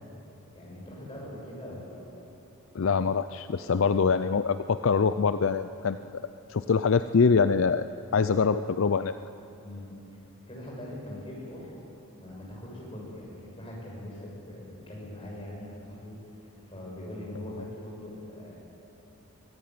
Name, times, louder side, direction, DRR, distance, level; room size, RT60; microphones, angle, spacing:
voice 1, 0.5-2.2 9.6-9.9 10.5-11.8 12.1-18.6, left 1 dB, 25° left, -4 dB, 6.9 m, -42 dB
voice 2, 2.7-6.0 6.5-9.1, left 5 dB, 60° left, 12 dB, 0.4 m, -24 dB
23.5 x 14.5 x 9.5 m, 2.8 s
head